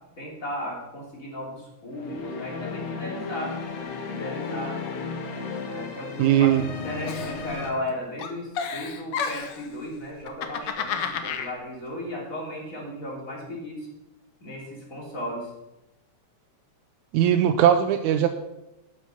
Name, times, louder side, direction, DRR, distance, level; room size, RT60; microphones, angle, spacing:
voice 1, 0.2-3.5 4.1-4.8 5.7-13.9 14.4-15.5, left 1 dB, 25° left, -3 dB, 3.7 m, -35 dB
sound 1, 1.9-7.7, left 4 dB, 85° left, 2.9 m, -34 dB
voice 2, 6.2-6.6 17.1-18.3, right 10 dB, 90° right, 6 dB, 2.0 m, -19 dB
Giggle, 7.1-7.9 8.2-9.7 10.2-11.5, left 6 dB, 65° left, 1.6 m, -31 dB
12.5 x 7.9 x 5.7 m, 0.92 s
omnidirectional pair, 3.4 m